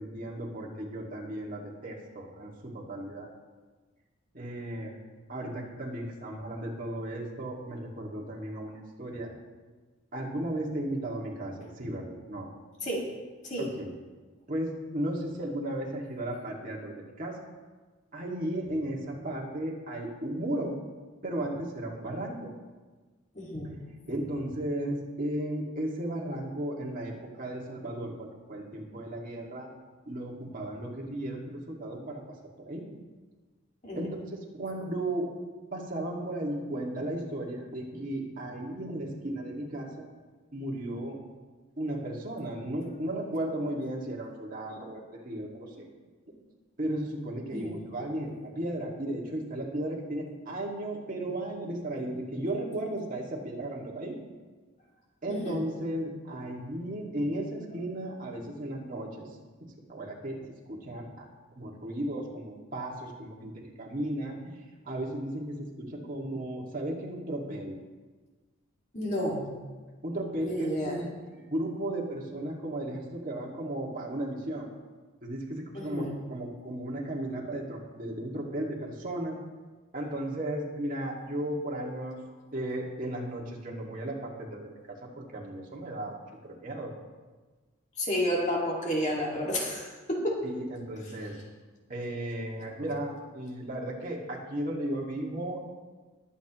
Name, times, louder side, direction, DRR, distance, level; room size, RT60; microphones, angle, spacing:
voice 1, 0.0-3.3 4.3-4.9 5.3-9.3 10.1-12.5 13.6-13.9 14.5-17.4 18.1-20.8 21.2-22.5 23.7-29.7 30.1-32.2 32.6-32.8 33.9-35.3 35.7-40.1 40.5-41.2 41.8-45.9 46.8-54.2 55.2-59.3 59.9-61.3 61.6-64.4 64.8-67.8 70.0-71.1 71.5-74.7 75.2-79.4 79.9-82.2 82.5-86.2 86.4-86.9 90.4-91.4 91.9-95.7, right 1 dB, 40° right, -2 dB, 2.1 m, -35 dB
voice 2, 23.4-23.7 33.8-34.1 47.5-47.8 55.3-55.6 68.9-69.5 70.4-71.0 75.7-76.2 88.0-90.4 91.1-91.2, equal, 35° left, -2 dB, 2.1 m, -31 dB
21.0 x 8.5 x 3.0 m, 1.3 s
head